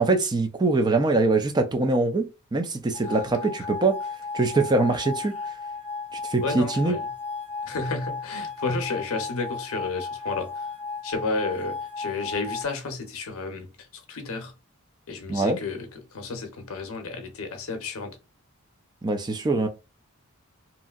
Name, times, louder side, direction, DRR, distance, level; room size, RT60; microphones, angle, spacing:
voice 1, 0.0-4.0 4.3-5.4 6.3-7.0 15.3-15.6 19.0-19.7, right 3 dB, 20° right, 0.4 m, -23 dB
sound 1, 2.9-12.6, left 4 dB, 70° right, 0.6 m, -35 dB
voice 2, 6.4-7.0 7.7-10.5 11.0-13.7 14.1-14.5 15.1-15.9 16.1-18.2, left 3 dB, 65° left, 0.7 m, -31 dB
2.9 x 2.6 x 2.4 m
head